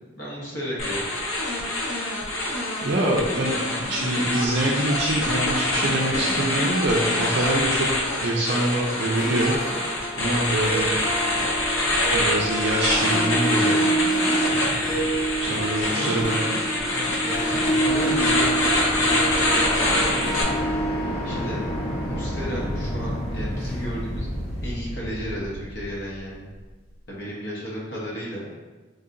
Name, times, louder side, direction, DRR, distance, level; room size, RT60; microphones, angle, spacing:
voice 1, 0.2-1.1 15.4-16.4 17.2-18.8 19.6-20.0 21.2-21.6 22.1-24.3 24.6-26.5 27.1-28.5, equal, 60° left, -5 dB, 0.9 m, -33 dB
sound 1, 0.8-20.4, left 1 dB, 90° left, 0.6 m, -25 dB
voice 2, 2.8-3.5 3.9-7.9 8.2-9.5 10.2-10.9 12.1-13.8 14.5-15.0 15.4-16.4, right 1 dB, 55° right, -4 dB, 0.4 m, -25 dB
Harp, 9.0-24.3, right 2 dB, 10° left, 1.3 m, -28 dB
sound 2, 16.8-26.7, equal, 25° left, 0.7 m, -31 dB
3.9 x 2.7 x 2.5 m, 1.3 s
head